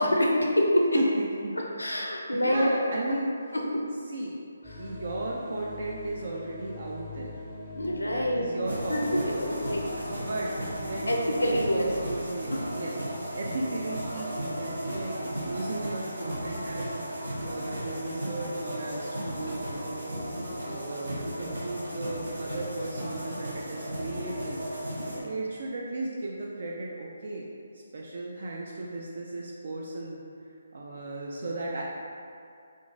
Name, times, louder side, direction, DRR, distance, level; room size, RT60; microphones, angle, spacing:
voice 1, 0.0-1.0 1.6-2.7 3.5-3.8 4.7-4.8 7.8-8.4 8.9-10.0 11.1-11.9 12.5-12.6 25.1-25.2, left 1 dB, 80° left, -1 dB, 0.5 m, -26 dB
voice 2, 0.9-1.5 2.3-3.3 4.1-7.3 8.1-9.4 10.0-10.5 10.8-20.2 20.6-24.6 25.2-27.5 27.7-30.2 30.7-31.8, right 2 dB, 55° right, -3 dB, 0.3 m, -35 dB
sound 1, 4.6-12.6, left 2 dB, 5° left, 0.5 m, -43 dB
sound 2, 8.6-25.2, equal, 70° right, 0.9 m, -35 dB
3.7 x 2.4 x 2.6 m, 2.4 s
figure-of-eight pair, 145°, 0 cm